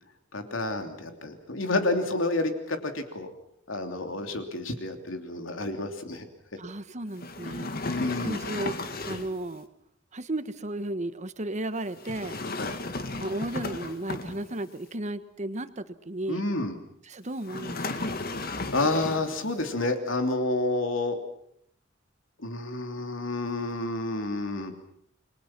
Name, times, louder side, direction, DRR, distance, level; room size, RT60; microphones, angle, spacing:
voice 1, 0.3-3.3 3.7-6.3 7.9-8.4 12.6-12.8 16.3-16.8 18.4-21.2 22.4-24.7, left 2 dB, 80° left, 6 dB, 3.2 m, -29 dB
voice 2, 6.6-9.7 10.1-12.4 13.2-16.5 17.0-18.1, right 1 dB, 35° right, 12 dB, 1.3 m, -34 dB
sound 1, 7.2-9.4 12.0-14.7 17.4-19.4, left 2 dB, 50° left, 2.0 m, -34 dB
29.5 x 22.5 x 6.0 m, 0.70 s
head